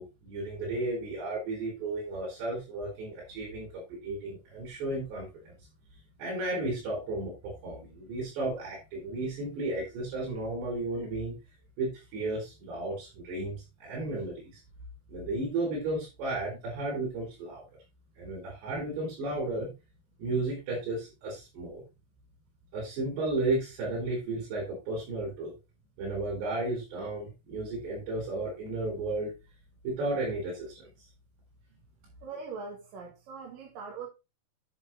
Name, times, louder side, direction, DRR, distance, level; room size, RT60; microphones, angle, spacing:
voice 1, 0.0-5.5 6.2-11.4 11.8-14.6 15.1-17.6 18.2-19.7 20.2-21.8 22.7-25.5 26.0-29.3 29.8-31.1, right 2 dB, 90° right, 6.5 m, -34 dB
voice 2, 32.2-34.1, right 5 dB, 60° right, 3.4 m, -41 dB
10.0 x 6.7 x 4.4 m
omnidirectional pair, 4.8 m